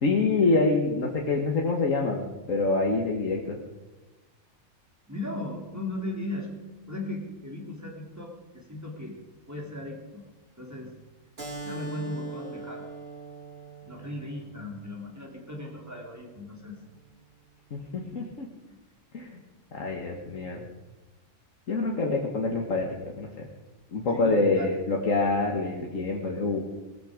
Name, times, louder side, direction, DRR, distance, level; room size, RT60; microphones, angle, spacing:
voice 1, 0.0-3.6 17.7-18.5 19.1-19.4 19.7-20.7 21.7-22.9 23.2-23.5 23.9-26.6, left 3 dB, 75° left, 0 dB, 1.9 m, -26 dB
voice 2, 5.1-6.6 6.9-9.2 9.5-10.2 10.6-10.9 11.6-12.9 13.8-16.8 18.7-18.8 24.1-24.7, left 1 dB, 10° right, -1 dB, 3.2 m, -37 dB
Keyboard (musical), 11.4-16.5, right 3 dB, 45° right, 3.2 m, -42 dB
19.0 x 14.0 x 5.1 m, 1.1 s
omnidirectional pair, 1.4 m